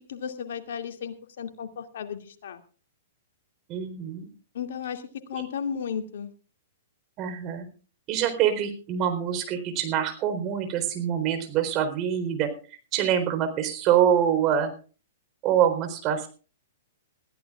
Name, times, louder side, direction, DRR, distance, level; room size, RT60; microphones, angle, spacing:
voice 1, 0.1-2.6 4.5-5.0 5.3-6.3, left 7 dB, 65° left, 6 dB, 2.4 m, -34 dB
voice 2, 3.7-4.3 5.3-5.4 7.2-7.7 8.1-12.5 12.9-14.7 15.4-16.3, right 9 dB, 35° right, 7 dB, 4.0 m, -25 dB
21.5 x 15.0 x 2.4 m, 0.37 s
hypercardioid pair, 115°, 0 cm